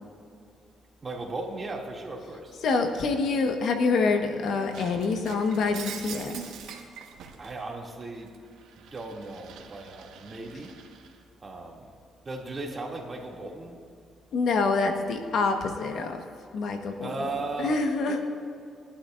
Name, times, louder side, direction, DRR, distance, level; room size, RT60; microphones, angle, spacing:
voice 1, 1.0-2.6 7.4-8.3 8.8-10.7 11.4-11.9 12.2-13.8 17.0-17.8 18.1-18.2, right 2 dB, 35° right, -1 dB, 2.5 m, -36 dB
voice 2, 2.6-6.3 14.3-16.2 16.5-17.1 17.6-18.2, left 4 dB, 70° left, 4 dB, 1.3 m, -26 dB
Shatter, 4.7-7.6 8.0-11.2, right 7 dB, 90° right, 1.4 m, -43 dB
21.5 x 11.5 x 2.6 m, 2.4 s
cardioid pair, 90°, 0 cm